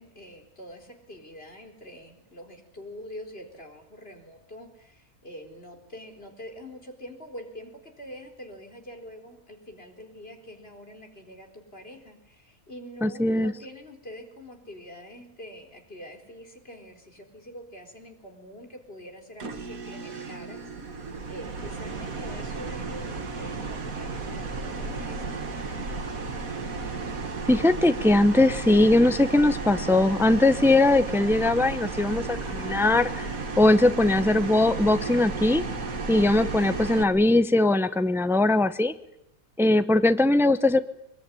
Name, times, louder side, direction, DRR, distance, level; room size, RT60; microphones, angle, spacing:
voice 1, 0.0-26.0, equal, 45° left, 4 dB, 4.5 m, -45 dB
voice 2, 13.0-13.5 27.5-33.3 33.6-35.6 36.1-38.9 39.6-40.8, left 2 dB, ahead, 12 dB, 0.7 m, -20 dB
sound 1, 19.4-37.0, right 4 dB, 80° right, 2.5 m, -33 dB
23.5 x 21.5 x 10.0 m, 0.81 s
omnidirectional pair, 1.4 m